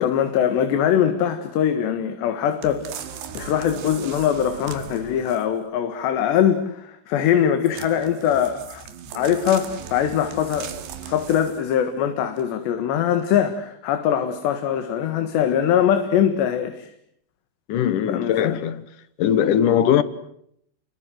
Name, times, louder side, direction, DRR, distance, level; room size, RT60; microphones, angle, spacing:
voice 1, 0.0-3.1 3.4-8.9 9.1-10.7 11.0-16.9 18.1-18.6, left 9 dB, 90° left, 3.9 m, -22 dB
sound 1, 2.6-5.6 7.6-11.8 12.4-12.5, right 8 dB, 85° right, 3.9 m, -38 dB
voice 2, 17.7-18.8 19.2-20.0, left 9 dB, 65° left, 2.3 m, -20 dB
29.5 x 23.0 x 7.8 m
omnidirectional pair, 4.8 m